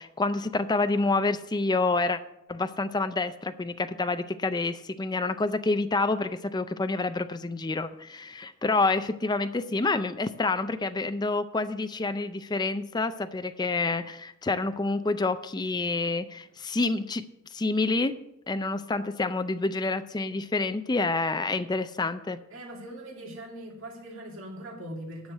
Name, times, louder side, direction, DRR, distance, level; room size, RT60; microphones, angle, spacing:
voice 1, 0.0-2.2 2.5-17.2 17.5-18.2 18.5-22.4, left 3 dB, 20° left, 10 dB, 0.4 m, -28 dB
voice 2, 22.5-25.3, right 1 dB, 60° right, -2 dB, 2.5 m, -41 dB
10.5 x 6.3 x 6.5 m, 0.81 s
head